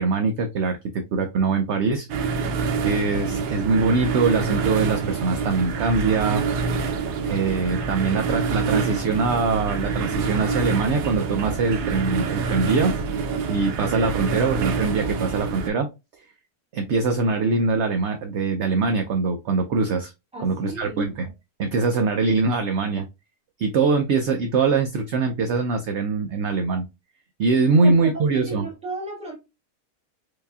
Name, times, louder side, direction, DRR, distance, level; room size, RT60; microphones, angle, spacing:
voice 1, 0.0-2.1 2.8-6.4 7.3-13.0 13.5-15.9 16.7-20.1 20.4-21.3 21.6-23.1 23.6-26.9 27.4-28.7, right 4 dB, 65° right, 0.7 m, -23 dB
sound 1, 2.1-15.7, right 4 dB, 85° right, 1.2 m, -26 dB
voice 2, 20.3-21.1 27.5-29.4, right 2 dB, 5° right, 1.2 m, -35 dB
4.8 x 2.7 x 2.3 m
omnidirectional pair, 1.7 m